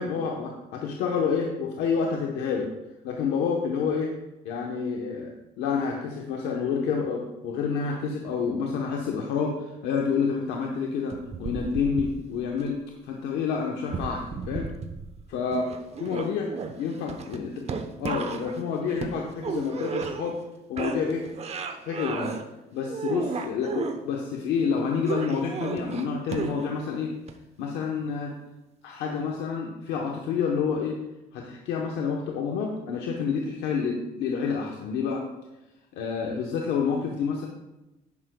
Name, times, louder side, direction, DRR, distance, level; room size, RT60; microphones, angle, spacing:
voice 1, 0.0-2.7 3.0-4.1 4.4-12.8 13.0-14.7 15.3-15.7 16.0-17.5 18.0-20.4 20.7-21.3 21.8-22.4 22.7-27.1 27.6-28.3 28.8-31.0 31.3-35.3 35.9-37.5, left 5 dB, 85° left, 0 dB, 1.0 m, -28 dB
sound 1, 11.1-12.6 13.8-15.3 15.5-20.5 20.8-22.4 22.8-24.0 25.1-26.8 27.3-27.4, right 5 dB, 40° right, 0.9 m, -34 dB
11.0 x 9.5 x 2.3 m, 0.98 s
cardioid pair, 110°, 17 cm